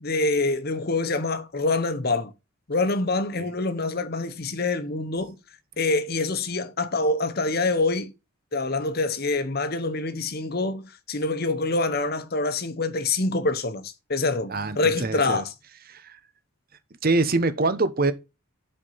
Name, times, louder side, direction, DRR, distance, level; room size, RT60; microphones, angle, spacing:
voice 1, 0.0-2.3 2.7-5.4 5.8-8.1 8.5-15.5, left 3 dB, 45° left, 1.0 m, -26 dB
voice 2, 14.5-15.4 15.9-16.2 17.0-18.1, right 3 dB, 45° right, 0.9 m, -24 dB
7.9 x 4.4 x 5.6 m
head